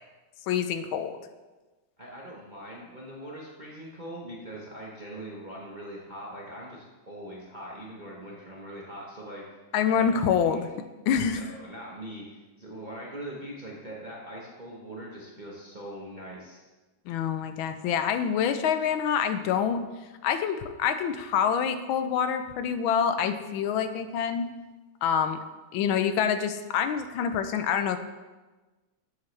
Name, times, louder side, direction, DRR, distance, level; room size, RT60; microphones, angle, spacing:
voice 1, 0.5-1.2 9.7-10.7 11.1-11.4 17.1-19.8 20.2-24.5 25.0-25.4 25.7-28.0, left 7 dB, 80° left, 9 dB, 1.4 m, -26 dB
voice 2, 2.0-9.4 9.9-10.6 11.3-16.7, right 1 dB, 35° right, -4 dB, 0.8 m, -42 dB
7.6 x 7.3 x 3.2 m, 1.2 s
omnidirectional pair, 2.2 m